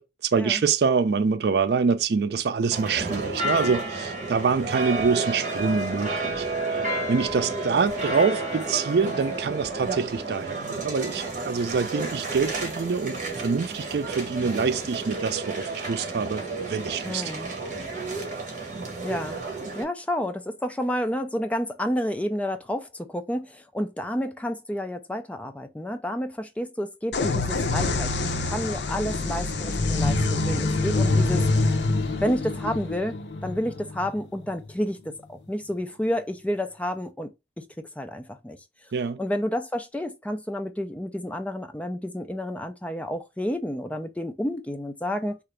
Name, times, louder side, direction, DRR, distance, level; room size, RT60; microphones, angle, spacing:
voice 1, 0.0-6.5 7.1-17.6 38.9-39.2, right 5 dB, 65° right, 0.4 m, -25 dB
sound 1, 2.7-19.8, right 2 dB, 45° right, 1.3 m, -31 dB
voice 2, 17.0-17.6 19.0-19.4 19.7-31.5 32.2-37.3 37.6-38.6 39.2-45.4, equal, 10° left, 0.4 m, -30 dB
sound 2, 27.1-34.7, left 2 dB, 75° left, 0.6 m, -25 dB
3.8 x 2.5 x 3.2 m
head